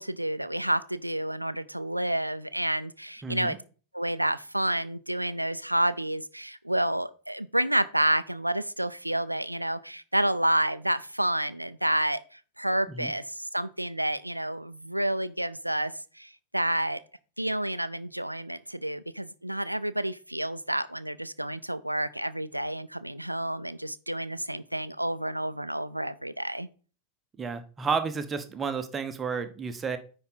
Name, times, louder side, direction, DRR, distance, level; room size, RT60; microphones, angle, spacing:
voice 1, 0.0-3.6 3.9-17.0 17.4-26.7, right 1 dB, 85° right, 0.4 m, -29 dB
voice 2, 3.2-3.6 12.9-13.1 27.4-30.0, right 5 dB, 20° right, 1.0 m, -31 dB
9.8 x 4.3 x 4.0 m
figure-of-eight pair, 90°, 0 cm